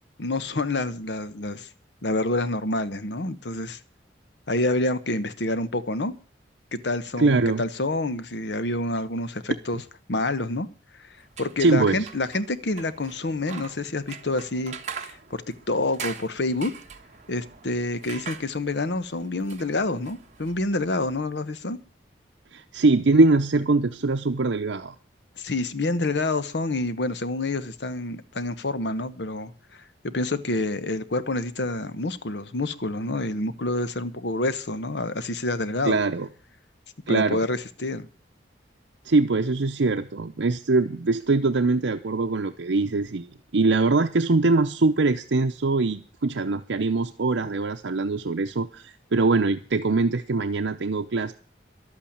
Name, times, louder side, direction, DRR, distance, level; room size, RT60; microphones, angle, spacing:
voice 1, 0.2-1.7 2.0-3.8 4.5-6.1 6.7-9.8 10.1-10.7 11.4-14.7 15.0-16.7 17.3-21.8 25.4-29.5 30.0-36.0 37.1-38.1, left 2 dB, 70° left, 1.0 m, -27 dB
voice 2, 7.2-7.6 11.6-12.1 22.5-24.9 35.8-36.3 37.1-37.4 39.0-43.3 43.5-51.3, right 3 dB, 80° right, 0.7 m, -22 dB
sound 1, 11.2-21.3, right 6 dB, 40° right, 1.4 m, -42 dB
12.0 x 8.7 x 8.6 m
head